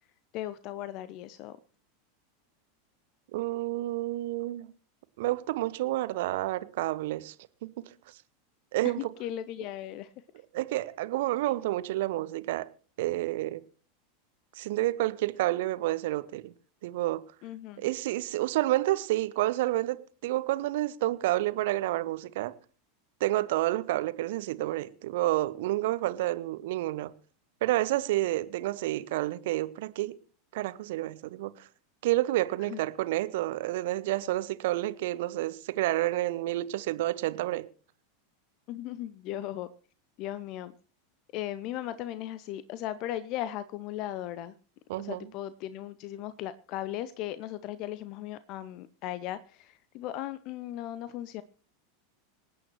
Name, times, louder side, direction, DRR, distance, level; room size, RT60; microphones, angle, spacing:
voice 1, 0.3-1.6 9.0-10.1 17.4-17.9 32.7-32.8 38.7-39.7 40.2-40.7 41.3-44.5 45.0-51.4, left 13 dB, 45° left, 0.6 m, -37 dB
voice 2, 3.3-4.7 5.2-7.3 8.7-9.0 10.5-12.7 13.0-13.6 14.6-16.5 16.8-17.2 17.8-22.5 23.2-27.1 27.6-30.2 30.5-31.7 32.0-37.6 44.9-45.3, right 16 dB, 55° right, 0.8 m, -29 dB
26.0 x 9.0 x 3.1 m
figure-of-eight pair, 85°, 0 cm